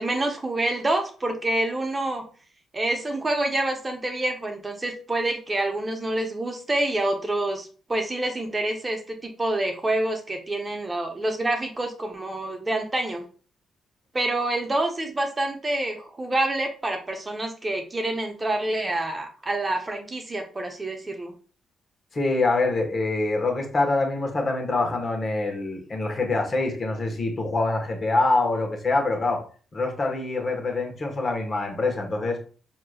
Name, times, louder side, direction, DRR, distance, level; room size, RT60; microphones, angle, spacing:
voice 1, 0.0-2.2 2.7-13.2 14.1-21.3, right 1 dB, 25° right, 3 dB, 1.0 m, -27 dB
voice 2, 22.1-29.4 29.7-32.4, left 2 dB, 45° left, 2 dB, 1.2 m, -25 dB
4.7 x 2.9 x 2.4 m, 0.40 s
supercardioid pair, 65°, 0 cm